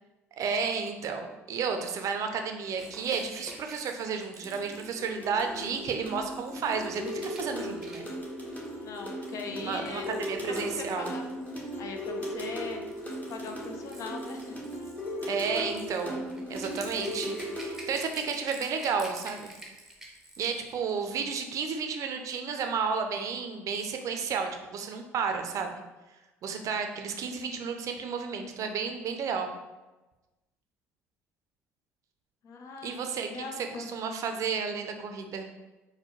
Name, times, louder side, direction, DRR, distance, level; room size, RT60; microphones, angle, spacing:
voice 1, 0.4-8.0 9.5-11.2 15.3-19.5 20.4-25.8 26.4-29.5 32.8-33.3 33.6-35.5, right 5 dB, 50° right, 5 dB, 0.5 m, -32 dB
Rattle / Rattle (instrument), 2.7-11.7 12.6-20.8 21.0-21.2, right 1 dB, 5° right, 0.7 m, -49 dB
sound 1, 4.4-18.0, equal, 20° left, 1.1 m, -37 dB
voice 2, 8.8-10.1 10.4-11.2 11.8-12.8 13.3-14.6 32.4-33.9, left 4 dB, 50° left, 3 dB, 0.5 m, -40 dB
4.1 x 2.1 x 3.1 m, 1.1 s
hypercardioid pair, 60°, 7 cm